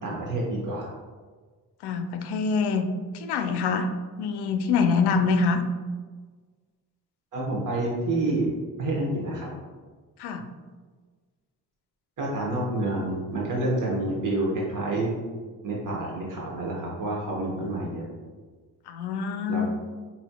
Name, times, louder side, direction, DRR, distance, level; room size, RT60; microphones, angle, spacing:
voice 1, 0.0-0.9 7.3-8.5 8.8-9.5 12.2-15.1 15.6-18.1 19.5-19.7, right 2 dB, 50° right, -4 dB, 1.1 m, -28 dB
voice 2, 1.8-2.9 3.1-3.9 4.2-5.6 10.2-10.4 18.9-19.7, left 5 dB, 80° left, 7 dB, 0.5 m, -25 dB
4.2 x 4.1 x 2.2 m, 1.4 s
cardioid pair, 60°, 40 cm